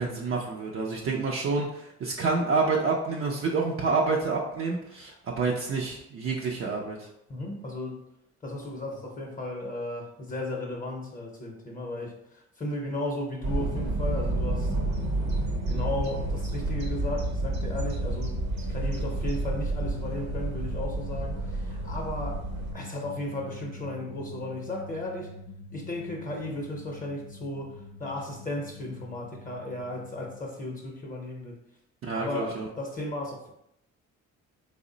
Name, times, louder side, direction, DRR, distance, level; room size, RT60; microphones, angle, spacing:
voice 1, 0.0-7.0 32.0-32.7, right 4 dB, 45° right, -2 dB, 0.5 m, -28 dB
voice 2, 7.3-8.0 8.4-14.7 15.7-22.4 22.7-25.3 25.7-31.6 32.1-33.5, left 1 dB, 30° left, 0 dB, 0.7 m, -35 dB
sound 1, 13.4-22.7, right 2 dB, 60° right, 0.9 m, -30 dB
sound 2, 14.2-30.4, left 2 dB, 70° left, 0.5 m, -41 dB
3.5 x 2.0 x 3.8 m, 0.80 s
cardioid pair, 90°, 30 cm